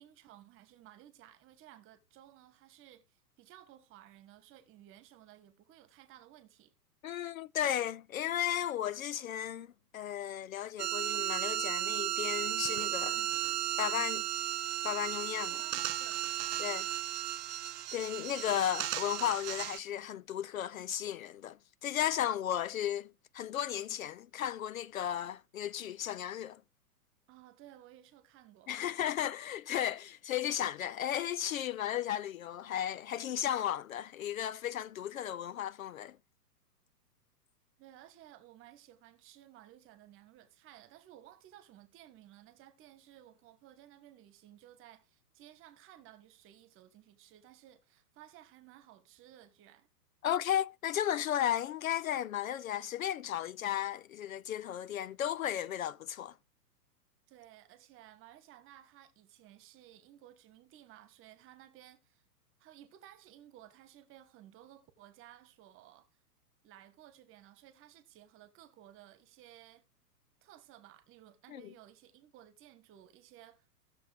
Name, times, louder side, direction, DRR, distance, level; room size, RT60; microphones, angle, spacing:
voice 1, 0.0-6.7 15.5-16.6 27.3-28.8 37.8-49.9 57.3-62.2 62.6-66.1 66.6-69.8 70.4-73.9, right 12 dB, 25° right, 1.4 m, -57 dB
voice 2, 7.0-9.7 9.9-13.3 13.8-14.3 14.8-15.6 16.6-16.9 17.9-21.6 21.8-26.6 28.7-36.2 50.2-56.3 71.5-71.7, left 11 dB, 60° left, 0.5 m, -34 dB
sound 1, 10.8-19.8, right 13 dB, 70° right, 0.6 m, -35 dB
16.0 x 6.9 x 3.4 m
figure-of-eight pair, 115°, 48 cm